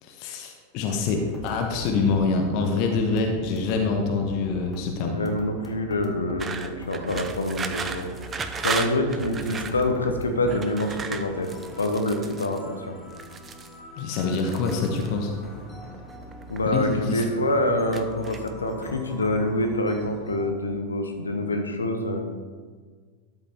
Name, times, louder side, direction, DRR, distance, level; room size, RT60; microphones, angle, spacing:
voice 1, 0.0-5.2 14.0-15.3 16.7-17.3, left 4 dB, 45° left, 2 dB, 1.1 m, -25 dB
sound 1, 1.0-20.5, equal, 15° left, 1.3 m, -42 dB
voice 2, 5.0-8.3 8.6-11.5 11.8-13.0 16.5-22.2, left 1 dB, 75° left, 6 dB, 1.0 m, -26 dB
sound 2, 6.4-9.8 10.5-12.6 13.1-13.7 14.1-15.1 15.9-16.6 16.9-17.5 17.9-18.7, right 5 dB, 20° right, 0.6 m, -34 dB
12.5 x 5.6 x 3.6 m, 1.5 s
figure-of-eight pair, 90°, 0 cm